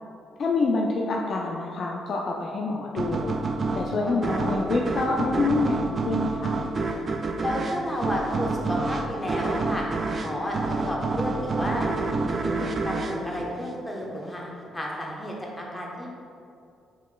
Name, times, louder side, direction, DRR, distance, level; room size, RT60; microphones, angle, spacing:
voice 1, 0.4-3.4 3.7-6.5, left 3 dB, 55° left, -1 dB, 0.3 m, -26 dB
sound 1, 3.0-14.2, right 3 dB, 45° right, 0.3 m, -28 dB
voice 2, 4.0-4.6 7.4-9.8 10.2-11.9 12.2-16.1, left 1 dB, 15° left, -3 dB, 1.0 m, -32 dB
5.4 x 3.0 x 2.3 m, 2.5 s
hypercardioid pair, 55°, 0 cm